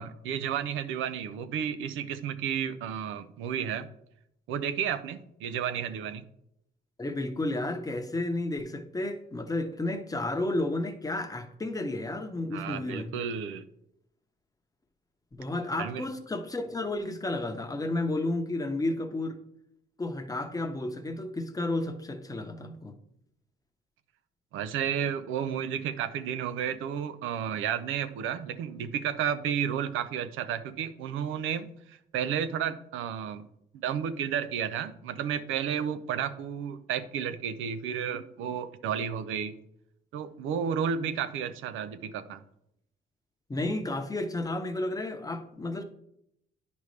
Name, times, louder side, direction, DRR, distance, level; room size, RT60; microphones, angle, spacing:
voice 1, 0.0-3.9 4.5-6.2 12.5-13.6 15.8-16.0 24.5-33.5 33.7-39.5 40.1-42.4, right 8 dB, 90° right, 12 dB, 0.5 m, -32 dB
voice 2, 7.0-13.1 15.3-19.4 20.0-22.9 43.5-45.8, left 2 dB, 20° left, 6 dB, 0.9 m, -32 dB
9.7 x 5.2 x 3.2 m, 0.76 s
cardioid pair, 90°, 20 cm